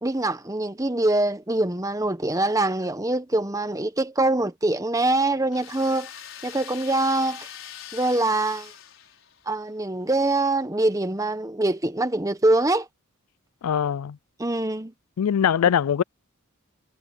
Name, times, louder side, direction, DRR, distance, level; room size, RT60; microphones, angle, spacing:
voice 1, 0.0-6.1 6.4-7.5 7.9-8.7 9.5-12.9 14.4-14.9, right 2 dB, 15° right, 1.1 m, -24 dB
sound 1, 5.5-9.6, left 10 dB, 65° left, 6.2 m, -42 dB
voice 2, 13.6-14.2 15.2-16.0, left 8 dB, 85° left, 0.4 m, -22 dB
head